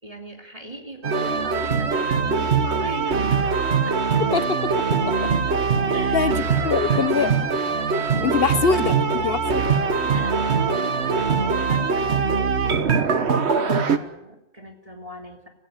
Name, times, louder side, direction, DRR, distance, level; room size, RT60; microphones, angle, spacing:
voice 1, 0.0-4.2 5.9-7.3 7.7-8.0 8.3-9.0 10.0-15.5, right 1 dB, 35° right, 2 dB, 2.9 m, -40 dB
sound 1, 1.0-14.0, right 5 dB, 85° right, 1.6 m, -22 dB
voice 2, 4.3-5.1 6.1-6.3 6.6-7.3 8.2-9.0 9.2-9.7, left 6 dB, 65° left, 14 dB, 1.3 m, -23 dB
sound 2, 4.6-11.9, equal, 5° left, 3.4 m, -41 dB
26.5 x 16.0 x 9.0 m, 0.91 s
omnidirectional pair, 1.1 m